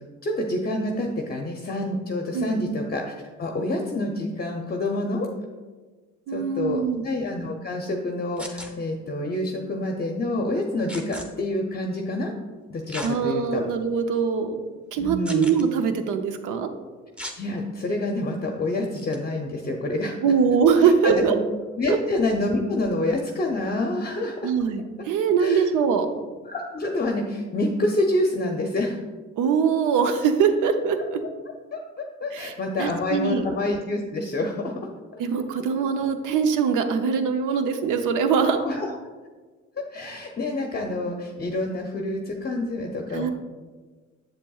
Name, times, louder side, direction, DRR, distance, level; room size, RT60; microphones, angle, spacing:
voice 1, 0.2-3.0 3.4-5.3 6.3-12.3 12.7-13.6 15.0-15.5 17.3-20.2 20.8-21.3 21.8-24.5 25.4-25.7 26.4-29.0 31.7-34.8 38.4-38.9 39.9-43.3, left 2 dB, 30° left, 2 dB, 0.6 m, -27 dB
voice 2, 2.3-2.7 6.3-7.1 13.0-14.6 14.9-16.7 20.2-21.4 21.9-22.0 24.4-26.1 29.4-31.2 32.3-32.5 32.8-33.5 35.2-38.6 43.1-43.3, right 6 dB, 90° right, 8 dB, 0.7 m, -22 dB
sound 1, 8.4-8.7 10.9-11.3 12.9-13.1 13.7-13.8 15.2-15.6 17.2-17.4 19.0-19.2, left 1 dB, 5° right, 0.8 m, -36 dB
7.5 x 7.3 x 2.3 m, 1.4 s
cardioid pair, 90°, 30 cm